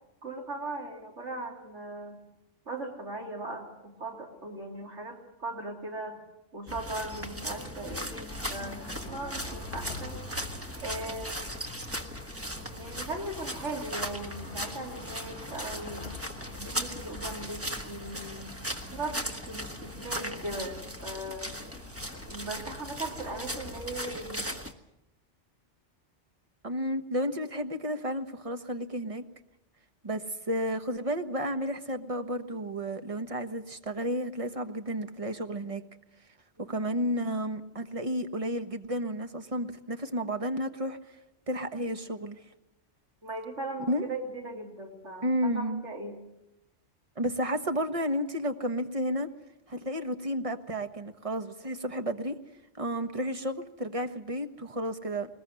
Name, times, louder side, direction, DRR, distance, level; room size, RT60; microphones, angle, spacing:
voice 1, 0.2-2.2 2.7-6.2 6.5-10.2 10.8-11.5 12.5-16.1 16.6-18.6 18.9-21.5 22.3-24.5 36.6-37.0 43.2-46.2, right 2 dB, 80° right, 1 dB, 3.2 m, -39 dB
sound 1, 6.7-24.7, equal, 10° right, 1.4 m, -38 dB
sound 2, 8.3-24.0, left 3 dB, 55° left, 1.5 m, -48 dB
voice 2, 26.6-29.2 30.0-35.8 36.6-41.0 41.5-42.4 43.9-44.1 45.2-45.8 47.2-49.3 49.7-52.3 52.7-55.3, equal, 30° right, 7 dB, 1.3 m, -32 dB
21.0 x 20.5 x 7.7 m, 0.92 s
omnidirectional pair, 1.2 m